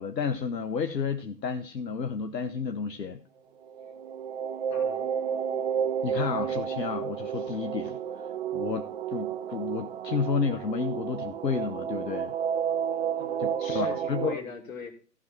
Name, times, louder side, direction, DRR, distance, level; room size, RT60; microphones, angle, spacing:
voice 1, 0.0-3.2 6.0-8.3 8.5-12.3 13.4-14.4, left 5 dB, 75° left, 1.0 m, -31 dB
sound 1, 3.7-14.3, right 8 dB, 35° right, 0.8 m, -31 dB
voice 2, 4.7-5.1 13.1-14.9, left 5 dB, 50° left, 3.0 m, -41 dB
15.0 x 6.1 x 4.4 m
figure-of-eight pair, 125°, 50 cm